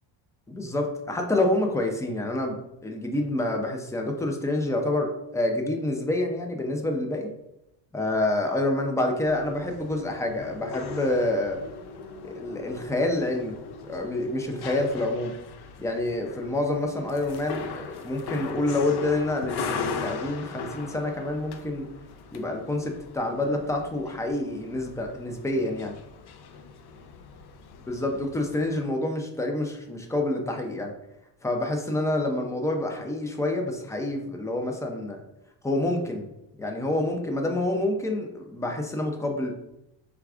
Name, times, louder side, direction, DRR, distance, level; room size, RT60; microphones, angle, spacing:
voice 1, 0.5-2.6 2.8-7.3 7.9-11.6 12.2-13.6 13.9-15.3 15.8-21.9 22.3-26.0 27.9-30.9 31.4-35.2 35.6-36.3 36.6-39.5, left 2 dB, 5° left, 3 dB, 0.5 m, -27 dB
sound 1, 9.2-28.8, left 5 dB, 60° left, 0.5 m, -39 dB
4.6 x 3.5 x 2.4 m, 0.87 s
cardioid pair, 120°, 46 cm